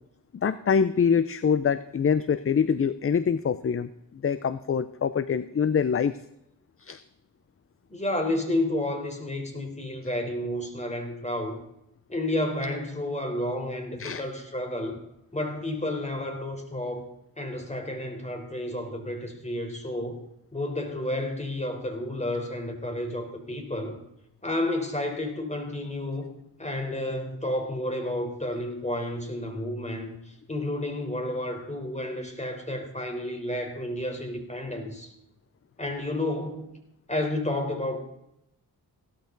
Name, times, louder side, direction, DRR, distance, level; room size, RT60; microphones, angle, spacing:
voice 1, 0.3-6.2 6.8-7.0 14.0-14.2, left 6 dB, 35° left, 14 dB, 0.6 m, -25 dB
voice 2, 7.9-11.6 12.1-15.0 15.3-17.1 17.4-20.2 20.5-24.0 24.4-26.3 26.6-35.1 35.8-36.7 37.1-38.0, left 1 dB, 15° left, 4 dB, 3.9 m, -31 dB
17.0 x 13.0 x 4.0 m, 0.84 s
cardioid pair, 60°, 39 cm